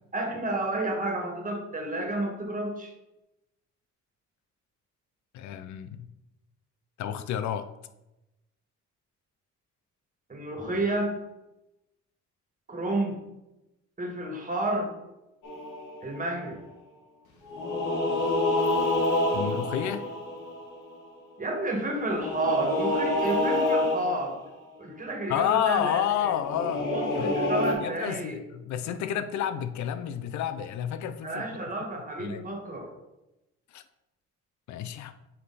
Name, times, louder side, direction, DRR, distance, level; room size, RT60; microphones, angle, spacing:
voice 1, 0.1-2.9 10.3-11.1 12.7-13.2 14.0-14.9 16.0-16.6 21.4-24.4 24.8-26.3 26.9-28.4 31.2-32.9, right 1 dB, 25° right, 1 dB, 1.6 m, -31 dB
voice 2, 5.3-6.1 7.0-7.6 19.3-20.0 25.3-26.9 27.2-27.3 27.8-31.4 32.2-32.4 33.7-33.8 34.7-35.1, left 10 dB, 70° left, 11 dB, 0.5 m, -30 dB
sound 1, 15.4-16.3 17.5-21.0 22.0-24.5 26.4-27.7, left 2 dB, 90° left, 1.3 m, -27 dB
7.5 x 3.3 x 4.1 m, 0.94 s
cardioid pair, 90°, 30 cm